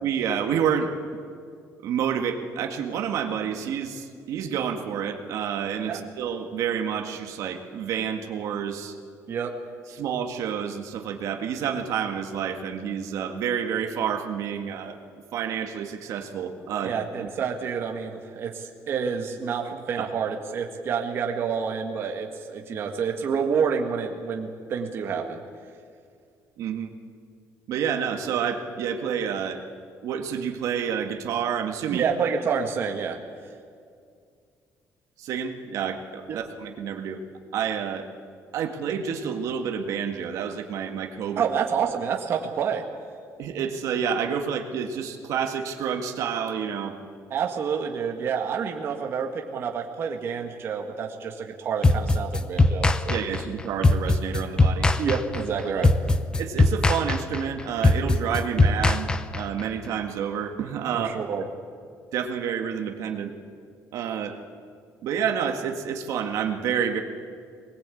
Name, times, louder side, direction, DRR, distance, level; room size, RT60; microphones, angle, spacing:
voice 1, 0.0-0.9 1.8-8.9 9.9-15.0 15.3-17.3 26.6-26.9 27.7-29.6 30.0-32.0 35.2-37.2 37.5-38.1 38.5-41.5 43.4-47.0 53.1-54.9 55.8-55.9 56.4-59.1 59.3-61.2 62.1-63.3 63.9-64.4 65.0-67.0, right 7 dB, 65° right, 4 dB, 1.9 m, -29 dB
voice 2, 16.8-25.4 31.9-33.2 36.3-36.4 41.4-42.9 47.3-53.2 55.0-55.9 60.9-61.5, right 6 dB, 40° right, 2 dB, 1.8 m, -28 dB
sound 1, 51.8-59.6, left 2 dB, 15° left, 0.7 m, -21 dB
23.0 x 20.5 x 8.6 m, 2.2 s
cardioid pair, 180°, 6 cm